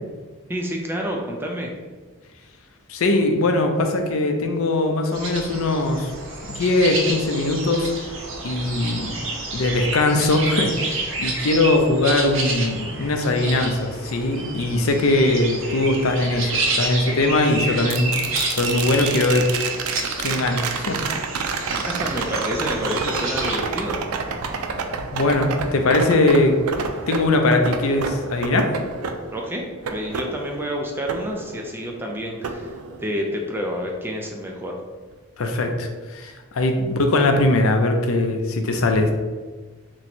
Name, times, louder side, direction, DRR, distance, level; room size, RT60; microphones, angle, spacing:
voice 1, 0.5-1.7 21.7-24.0 29.3-29.6 29.9-32.7 33.0-34.8, equal, 10° right, 0 dB, 0.3 m, -29 dB
voice 2, 2.9-6.1 6.5-7.9 8.4-9.1 9.5-18.1 18.5-19.5 20.2-21.0 25.1-26.6 27.1-28.7 35.4-39.1, left 2 dB, 75° left, 5 dB, 0.5 m, -20 dB
sound 1, 5.1-23.6, right 2 dB, 65° right, 0.7 m, -29 dB
sound 2, 17.9-32.0 32.4-33.5 35.7-35.8, right 5 dB, 90° right, 0.4 m, -29 dB
3.0 x 2.7 x 4.2 m, 1.4 s
head